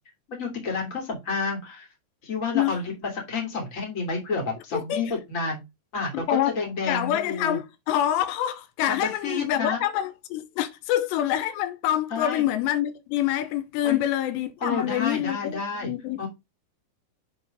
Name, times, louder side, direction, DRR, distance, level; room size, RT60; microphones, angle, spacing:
voice 1, 0.3-1.8 2.2-5.6 5.9-6.2 6.5-7.6 8.9-9.8 12.1-12.4 13.8-14.0 14.6-15.9 16.2-16.3, left 4 dB, 25° left, 2.3 m, -30 dB
voice 2, 4.7-5.0 6.1-6.6 6.9-16.3, left 12 dB, 85° left, 2.9 m, -26 dB
7.9 x 4.0 x 5.1 m
omnidirectional pair, 5.0 m